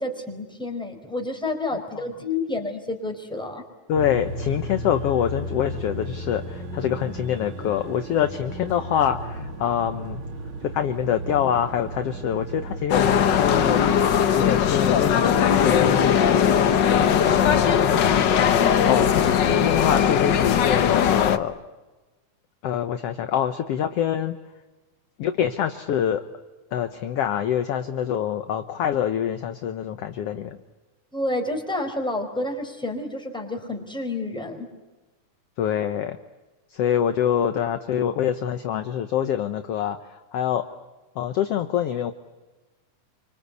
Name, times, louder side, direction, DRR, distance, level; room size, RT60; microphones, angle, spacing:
voice 1, 0.0-3.6 31.1-34.7, left 2 dB, ahead, 2 dB, 4.3 m, -29 dB
voice 2, 3.9-10.2 10.6-13.8 14.4-16.2 17.0-18.0 18.8-19.1 19.5-21.5 22.6-24.4 25.2-26.2 26.7-30.6 35.6-36.2 36.7-40.7 41.2-42.1, left 9 dB, 65° left, 9 dB, 1.7 m, -25 dB
sound 1, 3.9-12.9, right 1 dB, 60° right, 3.9 m, -34 dB
sound 2, 12.9-21.4, left 8 dB, 85° left, 0.9 m, -19 dB
28.5 x 25.0 x 8.3 m, 1.2 s
omnidirectional pair, 3.6 m